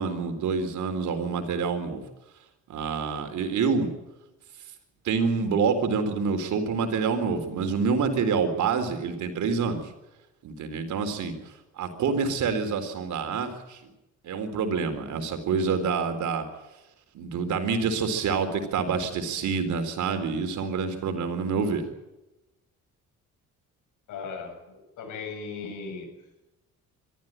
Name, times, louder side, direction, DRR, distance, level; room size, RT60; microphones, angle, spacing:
voice 1, 0.0-2.0 2.7-3.9 5.0-9.8 10.4-11.3 11.8-13.8 14.2-16.4 17.1-21.9, right 5 dB, 75° right, 7 dB, 4.0 m, -27 dB
voice 2, 24.1-26.1, left 5 dB, 85° left, 5 dB, 7.2 m, -37 dB
23.0 x 14.0 x 9.0 m, 0.98 s
cardioid pair, 90°, 30 cm